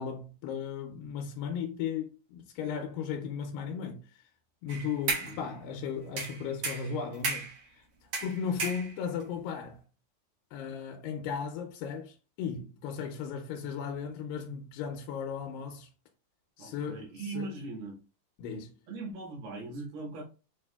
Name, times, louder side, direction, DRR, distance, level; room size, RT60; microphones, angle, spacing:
voice 1, 0.0-4.3 4.6-7.5 7.8-7.9 8.2-9.8 10.5-15.9 16.6-17.0 17.3-17.5 18.4-18.7, left 7 dB, 85° left, 2.4 m, -36 dB
sound 1, 4.7-5.4 6.2-7.6 8.1-9.2, right 4 dB, 60° right, 1.7 m, -34 dB
voice 2, 16.6-18.0 18.9-20.2, right 3 dB, 80° right, 3.0 m, -40 dB
6.8 x 2.7 x 2.2 m
omnidirectional pair, 4.0 m